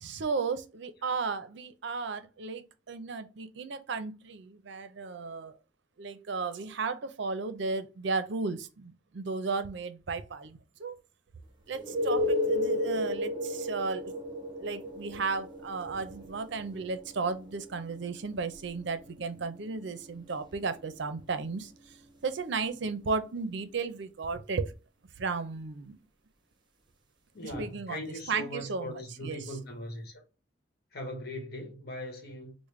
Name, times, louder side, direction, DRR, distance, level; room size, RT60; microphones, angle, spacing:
voice 1, 0.0-5.5 6.0-10.9 11.7-14.1 14.6-21.7 22.2-24.7 25.2-26.0 27.4-29.4, right 4 dB, 60° right, 0.5 m, -34 dB
sound 1, 11.7-23.3 27.5-27.6, left 1 dB, 25° right, 0.6 m, -35 dB
voice 2, 27.3-30.2 30.9-32.5, left 1 dB, 55° left, 1.1 m, -40 dB
4.9 x 2.1 x 3.1 m
head